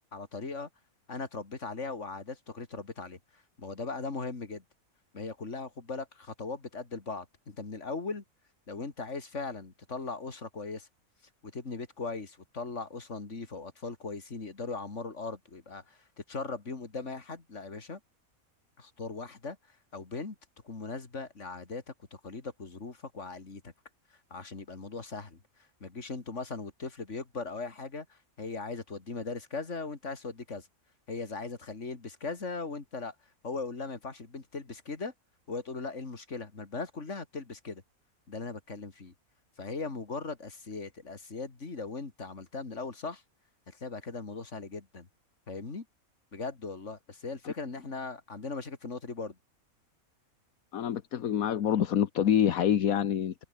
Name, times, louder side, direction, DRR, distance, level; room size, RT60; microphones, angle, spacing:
voice 1, 0.1-0.7 1.1-3.2 3.6-4.6 5.1-8.2 8.7-10.9 11.4-18.0 18.8-19.6 19.9-20.4 20.6-21.8 22.1-23.7 24.3-25.4 25.8-30.7 31.1-33.1 33.4-35.1 35.5-37.8 38.3-39.1 39.6-43.2 43.7-45.1 45.5-45.9 46.3-49.4, left 4 dB, 55° left, 3.0 m, -39 dB
voice 2, 50.7-53.3, left 9 dB, 75° left, 1.5 m, -26 dB
open air
omnidirectional pair, 1.5 m